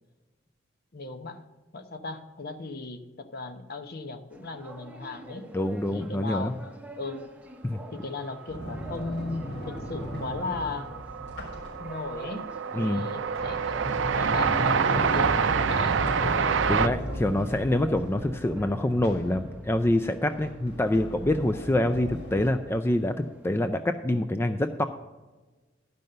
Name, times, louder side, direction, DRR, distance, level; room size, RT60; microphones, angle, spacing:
voice 1, 0.9-1.5 1.7-5.5 5.9-7.3 7.9-10.9 11.8-17.0, left 3 dB, 55° left, 8 dB, 0.8 m, -37 dB
sound 1, 4.3-23.7, right 1 dB, 10° right, 0.8 m, -48 dB
voice 2, 5.5-6.5 7.6-7.8 12.7-13.1 16.7-24.8, left 1 dB, 15° left, 8 dB, 0.3 m, -26 dB
Sliding door, 8.5-12.3 12.9-22.5, equal, 70° left, 3.9 m, -35 dB
Train, 9.5-9.6 9.7-16.9, right 6 dB, 75° right, 0.4 m, -27 dB
12.0 x 5.4 x 6.6 m, 1.2 s
head